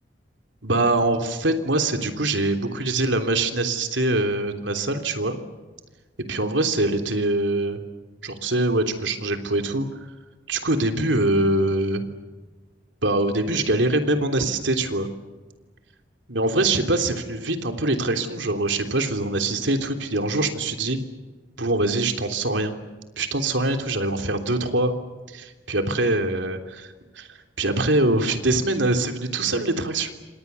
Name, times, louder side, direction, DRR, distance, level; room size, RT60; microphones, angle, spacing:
voice 1, 0.6-5.4 6.3-7.8 8.2-9.9 10.5-12.1 13.0-15.1 16.3-21.0 21.6-22.8 23.2-24.9 25.3-30.1, right 2 dB, 80° right, 6 dB, 3.3 m, -23 dB
29.0 x 26.5 x 7.0 m, 1.3 s
head